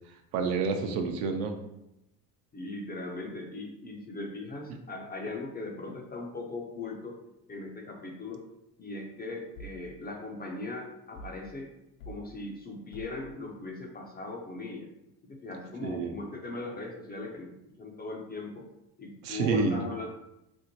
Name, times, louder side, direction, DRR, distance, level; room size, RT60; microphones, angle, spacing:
voice 1, 0.1-1.6 15.8-16.1 19.2-19.8, right 4 dB, 60° right, 5 dB, 0.7 m, -29 dB
voice 2, 2.5-7.2 7.5-8.4 8.8-11.7 12.1-14.9 15.2-17.5 17.8-18.7 19.0-20.1, left 3 dB, 20° left, 1 dB, 0.5 m, -39 dB
sound 1, 9.6-9.9 11.1-11.5 12.0-12.3 12.9-13.3, right 2 dB, 55° left, 0.7 m, -45 dB
4.3 x 2.1 x 2.8 m, 0.85 s
hypercardioid pair, 70°, 48 cm